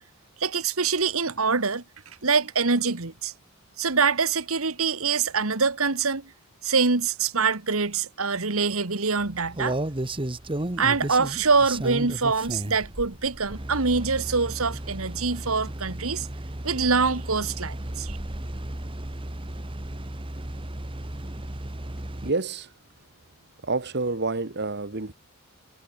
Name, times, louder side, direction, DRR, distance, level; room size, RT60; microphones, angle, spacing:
voice 1, 0.4-1.8 2.2-3.3 3.8-6.3 6.6-9.8 10.8-16.3 16.6-18.2, right 4 dB, 70° right, 1.8 m, -24 dB
sound 1, 9.2-22.3, right 1 dB, 25° right, 1.3 m, -34 dB
voice 2, 22.2-22.7 23.6-25.1, right 3 dB, 50° right, 1.4 m, -28 dB
head